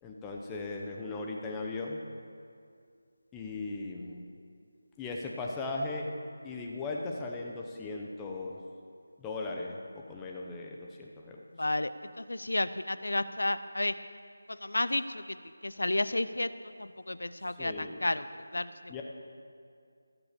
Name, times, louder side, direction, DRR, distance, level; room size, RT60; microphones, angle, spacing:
voice 1, 0.0-2.0 3.3-4.3 5.0-6.1 6.4-8.6 9.2-11.4 17.6-18.0 18.9-19.0, left 3 dB, 10° left, -1 dB, 0.8 m, -38 dB
voice 2, 11.6-11.9 12.3-13.9 14.7-15.0 15.8-16.5 17.1-17.7 18.0-18.2 18.5-18.6, left 2 dB, 80° left, 13 dB, 0.5 m, -30 dB
16.5 x 7.0 x 6.9 m, 2.3 s
figure-of-eight pair, 165°, 0 cm